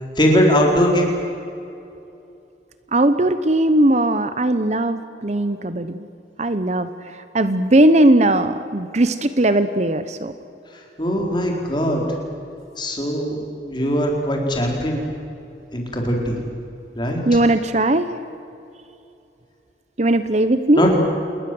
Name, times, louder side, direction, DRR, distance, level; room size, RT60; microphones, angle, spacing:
voice 1, 0.2-1.1 11.0-12.0 12.8-13.4 13.7-15.0 15.7-16.4 17.0-17.2 20.7-21.0, equal, 25° left, 0 dB, 4.5 m, -20 dB
voice 2, 2.9-6.0 6.4-6.9 7.3-10.3 17.3-18.1 20.0-20.9, right 1 dB, 40° right, 11 dB, 0.9 m, -18 dB
28.0 x 21.5 x 7.8 m, 2.7 s
head